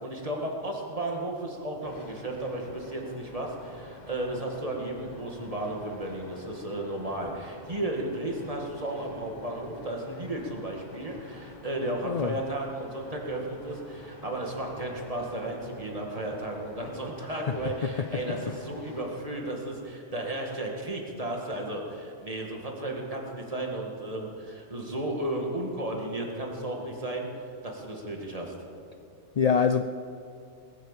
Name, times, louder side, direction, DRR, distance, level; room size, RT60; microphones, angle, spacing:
voice 1, 0.0-27.3 27.6-28.5, right 1 dB, 30° right, 0 dB, 2.2 m, -34 dB
sound 1, 1.8-19.1, left 2 dB, 35° left, 1.8 m, -49 dB
voice 2, 29.4-29.8, left 6 dB, 65° left, 9 dB, 0.4 m, -24 dB
20.0 x 9.3 x 7.5 m, 2.6 s
omnidirectional pair, 1.2 m